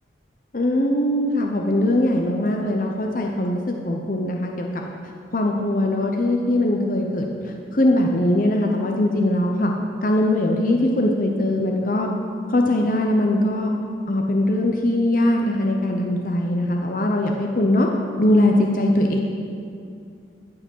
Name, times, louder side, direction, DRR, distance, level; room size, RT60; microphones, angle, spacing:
voice 1, 0.5-4.8 5.3-9.7 10.0-12.1 12.5-13.7 14.1-17.9 18.2-19.2, left 1 dB, 45° left, 1 dB, 0.7 m, -21 dB
14.5 x 4.9 x 6.2 m, 2.4 s
head